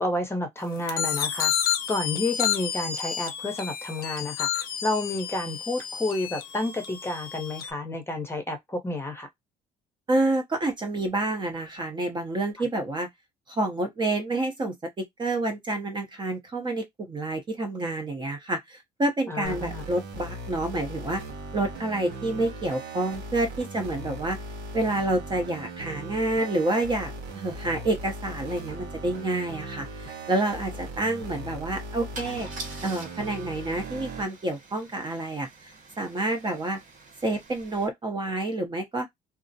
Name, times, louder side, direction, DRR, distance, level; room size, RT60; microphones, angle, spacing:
voice 1, 0.0-9.3 19.3-19.8, left 2 dB, 15° left, 0.7 m, -30 dB
sound 1, 0.9-7.7, left 9 dB, 65° left, 0.6 m, -30 dB
voice 2, 10.1-13.1 13.5-21.2 21.5-24.4 24.7-32.5 32.8-35.5 36.0-36.8 37.2-39.1, right 2 dB, 25° right, 0.6 m, -28 dB
sound 2, 19.4-34.3, right 1 dB, 85° right, 0.9 m, -38 dB
Car / Engine starting / Idling, 29.5-29.6 29.9-30.1 32.1-37.9, right 3 dB, 50° right, 1.0 m, -45 dB
2.4 x 2.0 x 2.6 m
cardioid pair, 110°, 17 cm